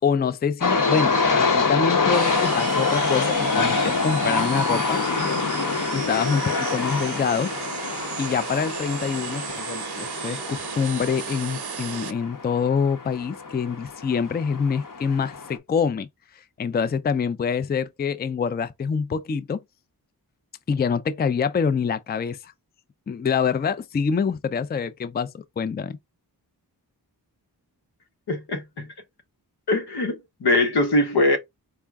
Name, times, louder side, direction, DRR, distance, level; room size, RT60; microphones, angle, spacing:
voice 1, 0.0-5.0 5.9-7.5 8.2-16.1 16.3-19.6 20.7-22.5 23.1-26.0, left 6 dB, 25° left, 0.4 m, -26 dB
sound 1, 0.6-15.6, left 4 dB, 55° left, 0.8 m, -26 dB
sound 2, 2.1-12.1, right 7 dB, 80° right, 0.7 m, -34 dB
voice 2, 28.3-28.9 29.7-31.4, left 2 dB, 90° left, 1.1 m, -22 dB
4.5 x 2.2 x 3.4 m
wide cardioid pair, 70°, 38 cm